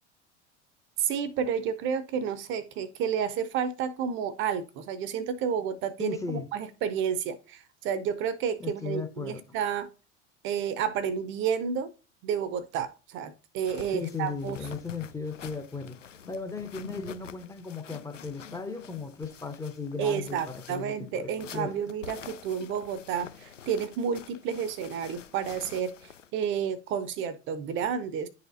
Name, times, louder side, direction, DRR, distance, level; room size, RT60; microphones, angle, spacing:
voice 1, 1.0-9.9 10.4-11.9 12.2-14.6 20.0-28.3, right 7 dB, 35° right, 0.6 m, -31 dB
voice 2, 6.0-6.5 8.6-9.4 13.9-21.7, left 4 dB, 10° left, 0.6 m, -36 dB
sound 1, 13.6-26.3, left 8 dB, 85° left, 0.5 m, -47 dB
10.5 x 4.2 x 2.5 m
figure-of-eight pair, 75°, 36 cm